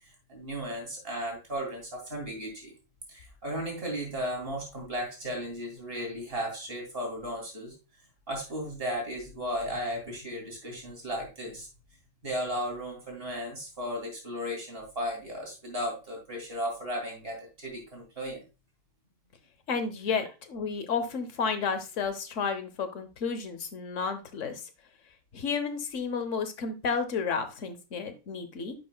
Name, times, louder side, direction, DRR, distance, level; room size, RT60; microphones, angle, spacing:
voice 1, 0.3-2.7 3.1-7.7 8.3-11.7 12.2-18.4, equal, 45° right, 0 dB, 3.2 m, -35 dB
voice 2, 19.7-24.7 25.3-28.7, left 5 dB, 70° left, 9 dB, 1.4 m, -32 dB
10.0 x 6.5 x 2.3 m, 0.29 s
omnidirectional pair, 1.4 m